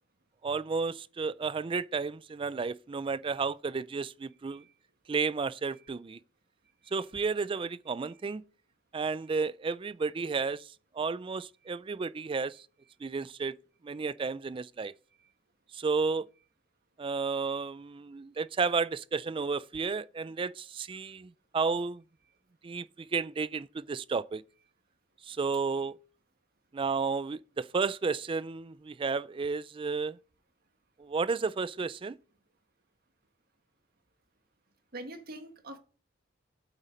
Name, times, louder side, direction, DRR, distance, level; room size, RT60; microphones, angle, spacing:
voice 1, 0.4-4.6 5.1-6.2 6.9-8.4 8.9-10.6 11.0-12.6 13.0-13.5 13.8-14.9 15.7-16.3 17.0-22.0 22.6-22.9 23.1-24.4 25.3-25.9 26.7-30.2 31.0-32.2, right 4 dB, 25° right, 0.3 m, -32 dB
voice 2, 34.9-35.8, right 1 dB, 50° right, 1.6 m, -47 dB
8.9 x 8.3 x 3.9 m
head